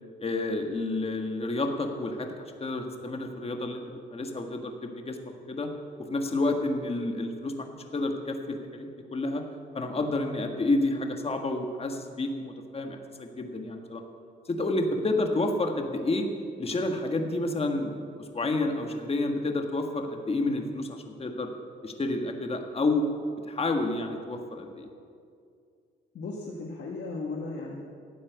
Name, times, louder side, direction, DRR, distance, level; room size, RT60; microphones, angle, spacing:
voice 1, 0.2-3.8 4.1-5.2 5.5-5.7 6.0-9.4 9.7-14.0 14.5-16.3 16.6-21.5 21.8-23.1 23.5-24.9, left 2 dB, 30° left, 4 dB, 1.6 m, -30 dB
voice 2, 26.1-27.8, left 3 dB, 60° left, -1 dB, 1.5 m, -36 dB
13.0 x 8.7 x 8.1 m, 2.3 s
cardioid pair, 90°, 20 cm